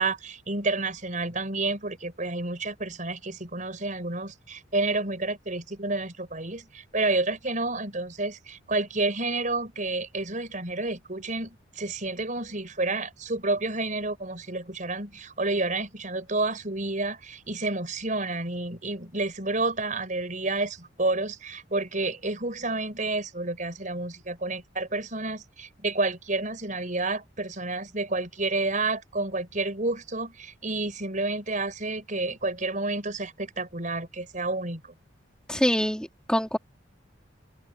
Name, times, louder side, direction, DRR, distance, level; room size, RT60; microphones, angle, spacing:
voice 1, 0.0-34.8, right 2 dB, 40° right, 5.9 m, -30 dB
voice 2, 35.5-36.6, equal, 5° left, 2.5 m, -25 dB
open air
head